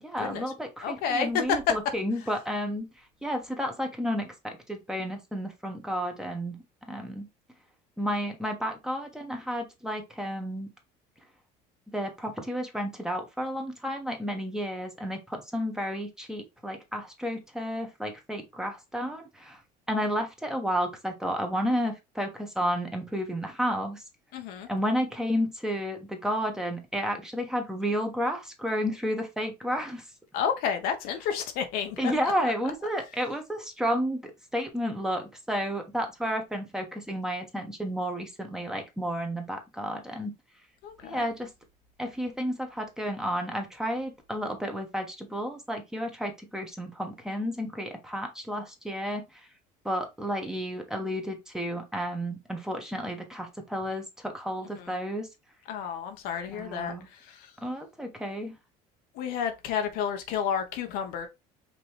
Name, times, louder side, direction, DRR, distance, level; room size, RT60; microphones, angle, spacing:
voice 1, 0.0-2.9 3.2-6.6 6.9-7.3 8.0-10.7 11.9-19.6 19.9-24.0 24.7-30.0 32.0-40.3 41.0-41.5 42.0-49.4 49.8-55.3 56.5-57.1 57.6-58.5, equal, 5° right, 1.2 m, -31 dB
voice 2, 0.8-1.7 24.3-24.7 30.3-32.1 40.8-41.2 54.8-54.9 55.7-56.9 57.3-57.5 59.2-61.3, left 7 dB, 70° left, 1.0 m, -30 dB
5.3 x 3.0 x 3.0 m
cardioid pair, 120°, 16 cm